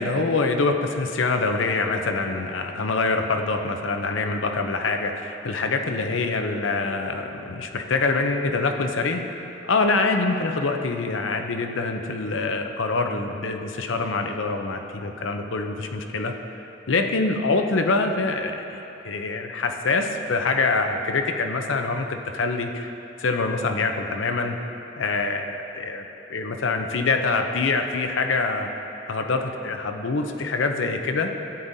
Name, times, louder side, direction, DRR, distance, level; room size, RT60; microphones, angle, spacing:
voice 1, 0.0-9.2 9.7-16.3 16.9-18.8 19.0-22.9 23.2-24.6 25.0-28.7 29.1-31.3, left 3 dB, 80° left, 5 dB, 0.7 m, -25 dB
13.5 x 8.8 x 2.7 m, 2.9 s
head